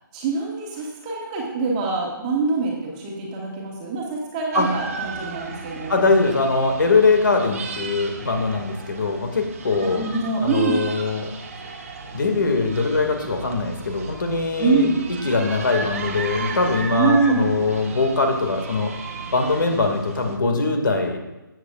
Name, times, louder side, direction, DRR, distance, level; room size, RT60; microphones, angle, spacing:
voice 1, 0.1-6.0 9.8-10.8 14.6-15.0 16.9-17.5, right 4 dB, 15° right, -2 dB, 1.6 m, -24 dB
sound 1, 4.5-20.4, right 4 dB, 40° right, 1.3 m, -35 dB
voice 2, 5.9-10.1 10.4-11.3 12.1-18.9 19.3-21.2, left 3 dB, 60° left, 4 dB, 2.1 m, -22 dB
18.0 x 8.2 x 2.5 m, 1.0 s
hypercardioid pair, 165°, 12 cm